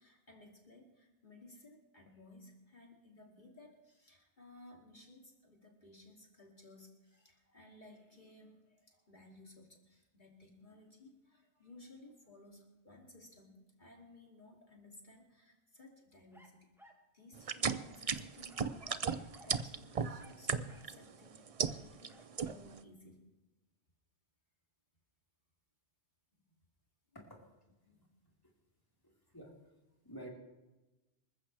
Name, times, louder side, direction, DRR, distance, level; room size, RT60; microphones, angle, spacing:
voice 1, 0.0-16.7 17.1-23.2 26.5-26.6 27.8-28.0, left 2 dB, 40° left, -1 dB, 2.9 m, -59 dB
sound 1, 16.3-17.1 17.7-18.0 18.5-19.1 19.3-19.6 20.2-21.0 22.1-22.3, equal, ahead, 2.0 m, -60 dB
sound 2, 17.4-21.0 21.4-22.1 22.4-22.8, right 6 dB, 40° right, 0.5 m, -35 dB
voice 2, 29.0-29.5 30.0-30.3, right 1 dB, 20° left, -3 dB, 4.0 m, -49 dB
26.5 x 14.5 x 3.4 m, 1.0 s
omnidirectional pair, 1.2 m